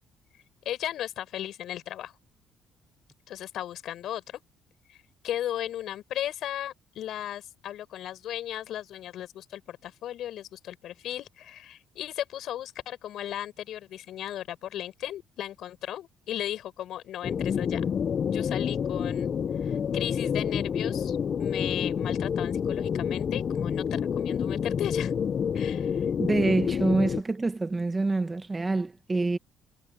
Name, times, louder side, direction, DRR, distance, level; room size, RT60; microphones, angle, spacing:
voice 1, 0.6-2.1 3.3-4.4 4.9-5.0 5.2-17.9 18.3-19.3 19.6-25.1 25.5-26.1, left 12 dB, 70° left, 6.9 m, -36 dB
sound 1, 17.2-27.2, left 7 dB, 50° left, 0.5 m, -28 dB
voice 2, 26.2-29.4, right 3 dB, 20° right, 1.1 m, -26 dB
cardioid pair, 90°, 0 cm